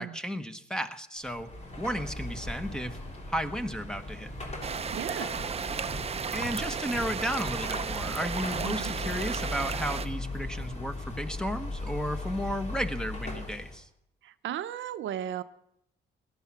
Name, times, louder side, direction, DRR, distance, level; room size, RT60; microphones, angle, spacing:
voice 1, 0.0-1.5 1.8-3.0 3.3-4.3 6.3-13.9, equal, 5° left, 9 dB, 1.1 m, -33 dB
Car passing by / Traffic noise roadway noise / Engine, 1.2-13.8, left 2 dB, 35° left, 3.2 m, -38 dB
sound 1, 4.6-10.1, right 6 dB, 30° right, 0.6 m, -34 dB
voice 2, 4.9-5.3 8.6-8.9 14.2-15.4, right 10 dB, 70° right, 11 dB, 0.7 m, -35 dB
17.5 x 11.5 x 5.9 m, 0.77 s
cardioid pair, 90°, 20 cm